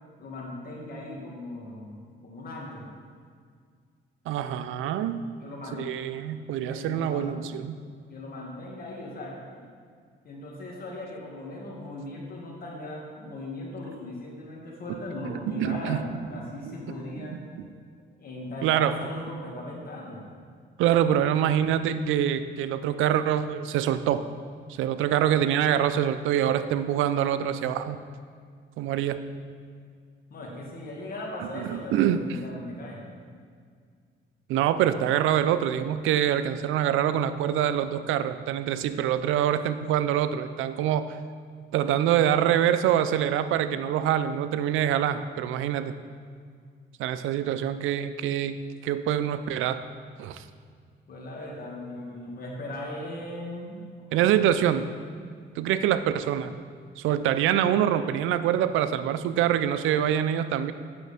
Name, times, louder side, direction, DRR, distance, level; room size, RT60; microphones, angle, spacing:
voice 1, 0.2-2.9 5.4-5.9 6.6-7.4 8.1-9.7 10.2-17.4 18.2-20.2 30.3-33.0 51.1-53.8 54.1-54.4, left 1 dB, 50° left, -2 dB, 1.9 m, -38 dB
voice 2, 4.3-5.2 5.7-7.8 15.4-16.0 16.7-16.8 17.3-17.6 18.6-18.9 20.8-24.2 24.7-28.0 28.8-29.2 31.6-32.2 34.5-41.2 41.7-45.9 47.0-48.6 48.8-49.8 50.2-50.4 54.1-54.9 55.6-56.5 57.0-60.7, right 10 dB, 90° right, 12 dB, 0.4 m, -25 dB
8.9 x 6.3 x 3.5 m, 2.1 s
cardioid pair, 90°, 20 cm